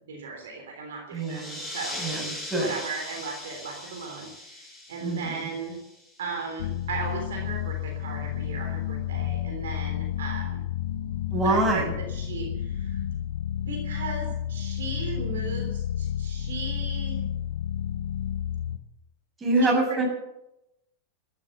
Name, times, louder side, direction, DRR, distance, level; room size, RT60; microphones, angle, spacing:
voice 1, 0.1-2.0 2.6-5.8 6.2-10.6 11.4-13.0 13.7-17.3 19.6-20.0, right 4 dB, 60° right, 3 dB, 3.4 m, -37 dB
voice 2, 1.1-1.6 2.0-2.7 5.0-5.4 11.3-11.9 19.4-20.0, right 2 dB, 15° right, 0 dB, 7.3 m, -25 dB
sound 1, 1.2-6.4, left 1 dB, 15° left, 7.2 m, -39 dB
sound 2, 6.6-18.8, left 10 dB, 60° left, 0.9 m, -31 dB
14.0 x 12.5 x 8.0 m, 0.88 s
figure-of-eight pair, 90°, 0 cm